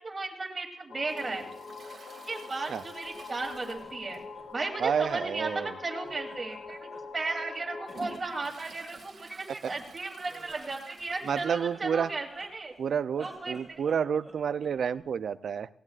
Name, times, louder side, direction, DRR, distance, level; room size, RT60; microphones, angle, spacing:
voice 1, 0.0-1.5 2.3-4.2 4.5-12.7 13.2-13.8, right 3 dB, 30° right, 0 dB, 2.9 m, -35 dB
sound 1, 0.9-8.2, left 4 dB, 70° left, 0.9 m, -44 dB
Toilet flush, 1.0-4.5 4.8-4.9 5.3-5.4 6.2-6.3 6.9-11.8 12.1-12.2 12.4-12.5 13.5-13.6, right 4 dB, 50° right, 2.0 m, -51 dB
Laughter, 3.4-5.7 6.0-7.6 7.8-9.0 9.7-12.8 13.1-15.0, right 1 dB, ahead, 4.7 m, -53 dB
voice 2, 4.8-5.7 11.3-12.1 12.8-15.7, right 7 dB, 70° right, 15 dB, 0.4 m, -29 dB
18.5 x 17.5 x 2.4 m, 0.64 s
wide cardioid pair, 115°, 0 cm